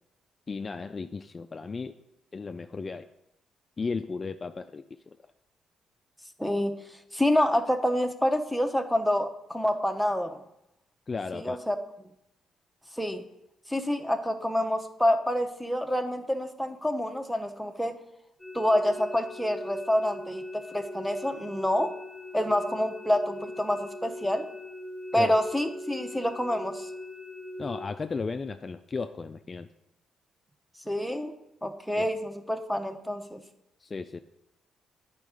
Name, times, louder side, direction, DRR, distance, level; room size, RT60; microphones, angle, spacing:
voice 1, 0.5-2.0 2.3-3.1 3.8-5.2 11.1-11.6 25.2-25.4 27.6-29.7 31.9-32.1 33.8-34.2, left 4 dB, 35° left, 8 dB, 0.3 m, -35 dB
voice 2, 6.4-6.7 7.1-10.4 11.3-11.8 13.0-13.2 13.7-18.0 18.5-21.9 22.3-24.5 25.1-26.9 30.9-31.3 31.6-33.4, left 1 dB, ahead, 5 dB, 0.7 m, -27 dB
sound 1, 18.4-27.8, left 1 dB, 20° left, 1.1 m, -41 dB
9.1 x 4.4 x 4.9 m, 0.84 s
cardioid pair, 90°, 0 cm